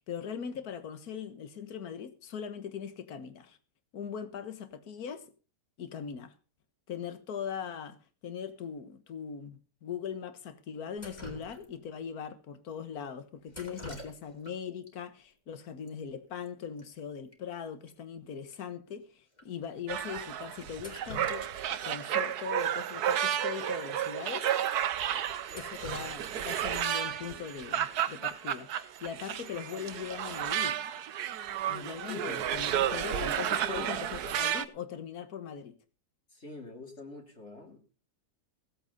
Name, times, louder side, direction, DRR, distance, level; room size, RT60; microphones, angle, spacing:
voice 1, 0.0-3.6 3.9-5.3 5.8-6.3 6.9-8.0 8.2-24.5 25.5-28.7 29.0-30.8 31.7-35.8, left 7 dB, 65° left, 1.8 m, -40 dB
Drip, 11.0-12.0 13.5-14.5 14.8-14.9 15.9-16.0 16.2-16.5 16.8-16.9 17.3-17.4 17.9-18.0 18.5-18.6 19.3-19.4 20.6-21.8 22.2-22.3 23.6-23.7 24.1-24.2 24.7-24.8 25.2-26.9 28.9-29.2 29.6-30.0, left 1 dB, 25° left, 2.8 m, -46 dB
sound 1, 19.9-34.6, right 10 dB, 70° right, 1.3 m, -32 dB
voice 2, 32.1-32.5 33.1-33.9 36.3-37.8, left 4 dB, 40° left, 2.9 m, -44 dB
17.0 x 8.0 x 5.3 m
omnidirectional pair, 1.8 m